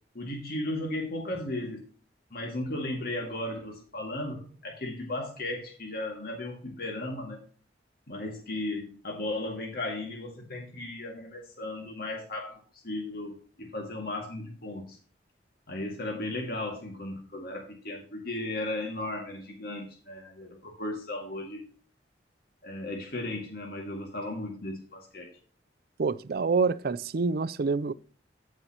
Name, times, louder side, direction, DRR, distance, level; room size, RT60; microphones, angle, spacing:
voice 1, 0.1-1.9 2.3-7.4 8.1-15.0 15.7-21.7 22.6-25.3, left 1 dB, 55° left, 2.0 m, -35 dB
voice 2, 26.0-27.9, right 4 dB, 55° right, 0.4 m, -27 dB
14.5 x 5.6 x 2.9 m
head